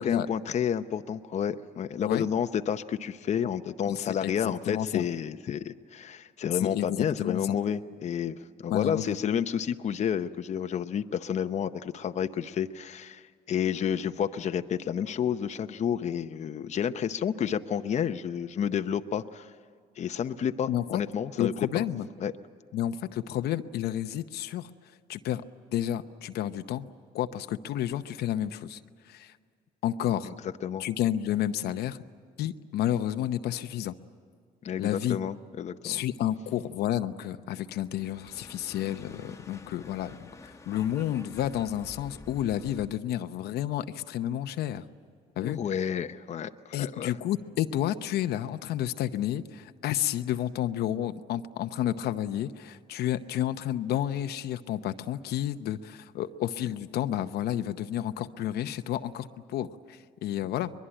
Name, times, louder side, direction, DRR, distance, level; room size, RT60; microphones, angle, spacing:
voice 1, 0.0-19.5 20.0-21.8 22.2-22.3 30.2-30.8 34.6-36.0 45.4-47.1, left 8 dB, 40° left, 9 dB, 0.8 m, -30 dB
voice 2, 3.9-4.3 4.7-5.0 6.6-7.4 8.7-9.2 20.7-21.0 21.4-22.1 22.7-24.7 25.1-25.4 25.7-26.9 27.1-28.8 29.1-29.3 29.8-30.3 30.8-32.0 32.4-33.9 34.8-35.2 35.8-44.8 45.4-45.6 46.7-60.7, left 11 dB, 70° left, 10 dB, 0.8 m, -31 dB
sound 1, 37.8-43.0, left 3 dB, 20° left, 1.3 m, -49 dB
23.0 x 22.0 x 8.9 m, 2.1 s
cardioid pair, 110°, 17 cm